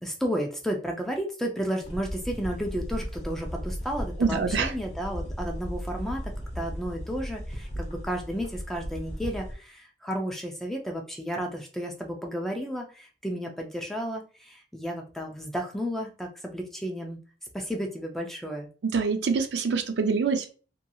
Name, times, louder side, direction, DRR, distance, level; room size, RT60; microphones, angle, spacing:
voice 1, 0.0-6.2 6.6-17.2 17.5-18.7, equal, ahead, 1 dB, 0.4 m, -32 dB
sound 1, 1.8-9.6, equal, 35° left, 0.7 m, -36 dB
voice 2, 4.2-4.7 18.8-20.5, right 5 dB, 65° right, 7 dB, 0.4 m, -25 dB
2.7 x 2.7 x 2.3 m, 0.37 s
head